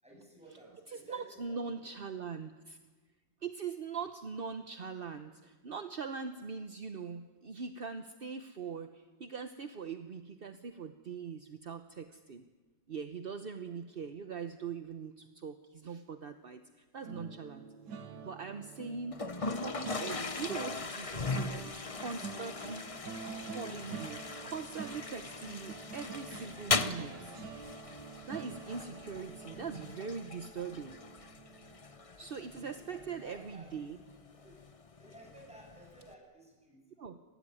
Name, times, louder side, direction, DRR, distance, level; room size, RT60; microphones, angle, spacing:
voice 1, 0.0-1.9 32.2-33.9 34.4-34.6 35.0-37.3, right 1 dB, 5° right, -1 dB, 8.0 m, -56 dB
voice 2, 0.9-2.8 3.4-12.4 12.9-17.7 18.2-22.8 23.5-27.3 28.2-31.0 32.2-34.0 37.0-37.2, right 5 dB, 40° right, 9 dB, 0.9 m, -42 dB
sound 1, 17.0-32.2 32.6-32.8 33.1-33.3, right 5 dB, 65° right, 2.1 m, -47 dB
Toilet flush, 19.1-36.1, left 4 dB, 35° left, 0.5 m, -40 dB
26.0 x 20.0 x 9.9 m, 1.3 s
omnidirectional pair, 2.0 m